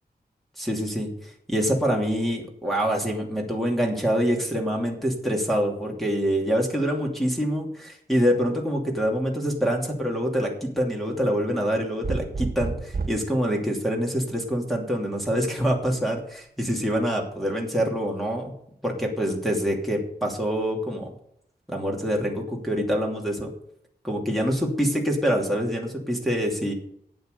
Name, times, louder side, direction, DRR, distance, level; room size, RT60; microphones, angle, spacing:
voice 1, 0.6-18.5 18.8-21.1 21.7-23.5 24.0-26.7, equal, ahead, -2 dB, 2.8 m, -25 dB
sound 1, 12.0-13.3 14.9-15.5, right 4 dB, 60° right, 1.5 m, -30 dB
12.0 x 8.9 x 6.7 m, 0.71 s
wide cardioid pair, 95°, 17 cm